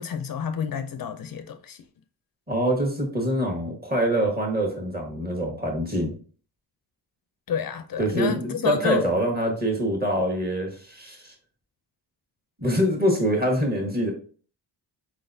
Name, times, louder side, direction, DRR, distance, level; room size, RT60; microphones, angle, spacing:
voice 1, 0.0-1.8 7.5-9.1, left 8 dB, 55° left, 0.5 m, -29 dB
voice 2, 2.5-6.1 8.0-11.3 12.6-14.1, right 1 dB, 20° right, 1.4 m, -25 dB
4.3 x 4.0 x 2.6 m
wide cardioid pair, 115°, 41 cm